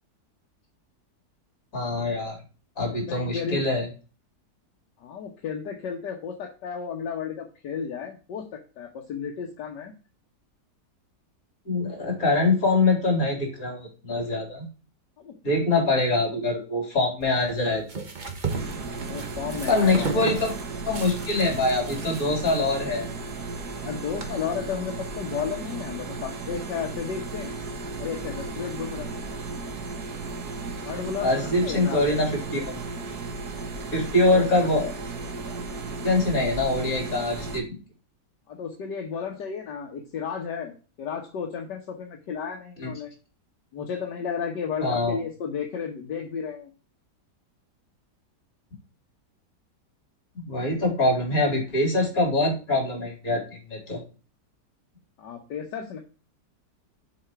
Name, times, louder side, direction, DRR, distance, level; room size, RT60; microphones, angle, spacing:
voice 1, 1.7-2.4 2.8-3.9 11.7-14.6 15.4-18.0 19.7-20.5 20.9-23.1 31.2-32.8 33.9-34.9 36.0-37.7 42.8-42.9 44.8-45.2 50.4-54.0, left 2 dB, 55° left, 0 dB, 3.7 m, -24 dB
voice 2, 2.9-3.6 5.0-8.5 8.8-9.9 15.2-15.3 15.7-15.9 19.0-20.4 23.8-27.6 28.0-29.1 30.8-32.0 34.3-34.7 38.5-43.1 43.7-46.7 55.2-56.0, left 6 dB, 80° left, 2 dB, 1.7 m, -33 dB
sound 1, 17.2-24.3, right 4 dB, 30° right, 1.1 m, -35 dB
sound 2, 18.5-37.6, right 3 dB, 65° right, 1.8 m, -35 dB
7.3 x 4.9 x 4.5 m, 0.35 s
omnidirectional pair, 1.8 m